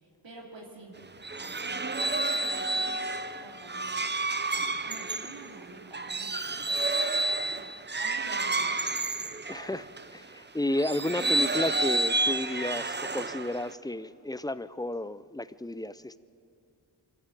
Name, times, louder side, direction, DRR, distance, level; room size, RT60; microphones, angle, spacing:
voice 1, 0.0-1.0 1.4-3.1 3.4-4.1 4.5-6.6 7.5-7.7 8.0-8.8, right 2 dB, 70° right, -1 dB, 3.1 m, -48 dB
sound 1, 1.0-10.1 10.7-13.7, right 2 dB, 25° right, 0.8 m, -30 dB
voice 2, 9.5-16.2, left 1 dB, 10° left, 15 dB, 0.5 m, -32 dB
24.0 x 14.0 x 8.4 m, 2.6 s
cardioid pair, 60°, 47 cm